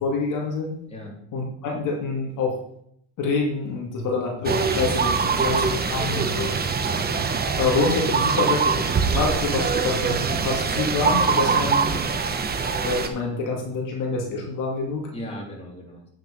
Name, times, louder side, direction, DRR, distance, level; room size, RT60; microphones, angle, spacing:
voice 1, 0.0-0.7 1.3-2.6 3.2-6.5 7.6-12.0 12.8-15.1, left 3 dB, 65° left, -1 dB, 2.4 m, -26 dB
sound 1, 4.4-13.1, right 5 dB, 25° right, 1.1 m, -23 dB
voice 2, 5.1-6.7 11.4-11.7 15.1-16.1, left 1 dB, 20° left, -2 dB, 3.5 m, -38 dB
8.7 x 6.4 x 5.3 m, 0.71 s
supercardioid pair, 95°, 34 cm